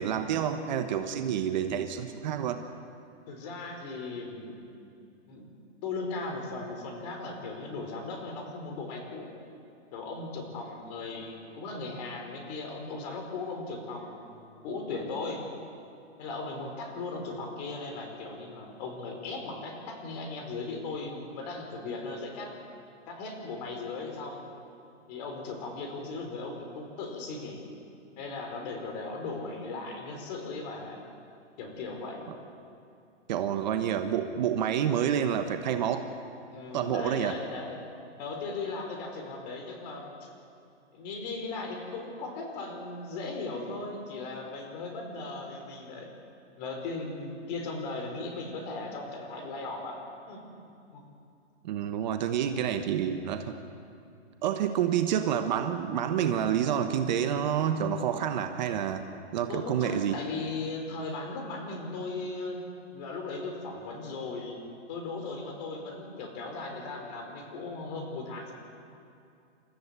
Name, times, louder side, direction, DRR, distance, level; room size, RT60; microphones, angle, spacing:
voice 1, 0.0-2.7 32.3-32.4 33.3-36.0 36.7-37.3 51.6-53.6 54.4-60.2, right 9 dB, 40° right, 7 dB, 1.2 m, -28 dB
voice 2, 3.3-4.7 5.3-5.5 5.8-9.3 9.9-15.4 16.2-22.5 23.1-24.5 25.1-27.7 28.2-31.0 31.6-32.3 36.5-37.8 38.2-40.3 40.9-46.1 46.6-50.0 50.3-50.4 50.9-51.0 59.5-62.6 62.9-64.6 64.9-68.5, left 3 dB, 35° left, 3 dB, 4.7 m, -37 dB
29.5 x 14.0 x 8.2 m, 2.6 s
hypercardioid pair, 160°, 36 cm